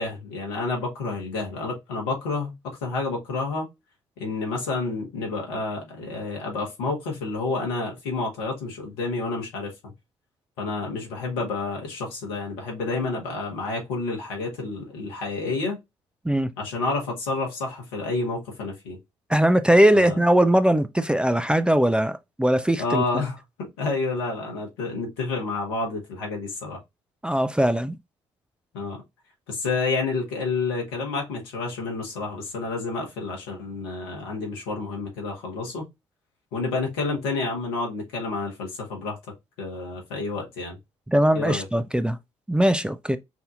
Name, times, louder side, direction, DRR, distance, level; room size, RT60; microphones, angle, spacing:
voice 1, 0.0-2.5 2.8-3.7 4.2-9.9 10.6-15.8 16.6-19.0 19.9-20.2 22.8-26.8 28.7-29.0 29.5-35.9 36.5-39.2 39.6-40.8 41.3-41.6, left 3 dB, 75° left, 1.5 m, -29 dB
voice 2, 19.3-23.0 27.2-28.0 41.1-42.2 42.5-43.2, right 1 dB, 5° right, 0.4 m, -20 dB
5.8 x 2.7 x 2.4 m
figure-of-eight pair, 45°, 14 cm